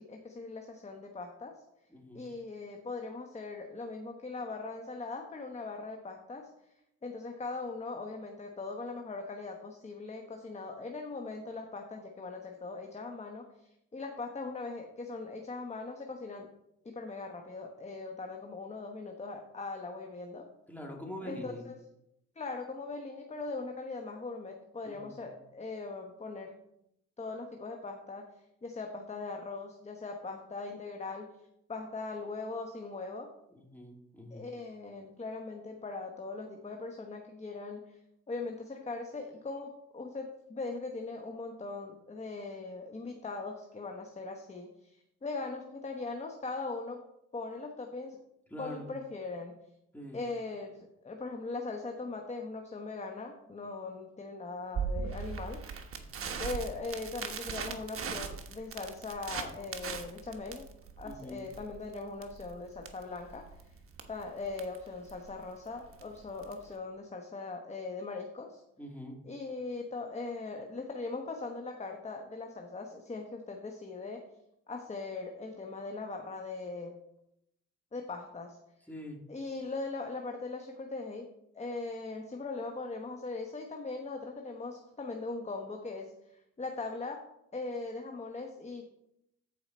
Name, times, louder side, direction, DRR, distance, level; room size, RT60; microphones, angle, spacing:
voice 1, 0.0-1.6 2.1-6.5 7.0-16.5 16.8-20.5 21.2-21.8 22.4-26.6 27.2-28.2 28.6-31.3 31.7-33.3 34.3-38.0 38.3-47.0 47.3-48.2 48.6-49.5 50.1-55.6 56.4-60.7 61.0-63.6 64.1-68.6 69.2-74.2 74.7-76.9 77.9-78.6 79.3-81.3 81.5-87.2 87.5-88.8, left 3 dB, 20° left, 3 dB, 1.1 m, -40 dB
voice 2, 1.9-2.3 20.7-21.7 24.8-25.3 33.5-34.5 48.5-48.9 49.9-50.2 61.0-61.4 68.8-69.2 78.9-79.2, left 1 dB, 5° left, 0 dB, 2.6 m, -44 dB
Crackle, 54.7-66.7, right 6 dB, 45° right, 1.3 m, -40 dB
13.5 x 4.7 x 4.2 m, 0.81 s
cardioid pair, 90°, 30 cm